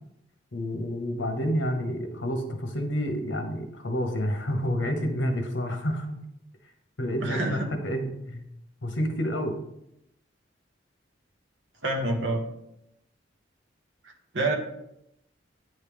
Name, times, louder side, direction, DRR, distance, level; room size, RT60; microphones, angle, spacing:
voice 1, 0.5-6.2 7.0-8.4 8.8-9.6, equal, 70° left, 5 dB, 1.0 m, -29 dB
voice 2, 7.2-7.7 11.8-12.4 14.3-14.5, right 2 dB, 75° right, 2 dB, 1.1 m, -26 dB
9.3 x 3.2 x 3.5 m, 0.80 s
head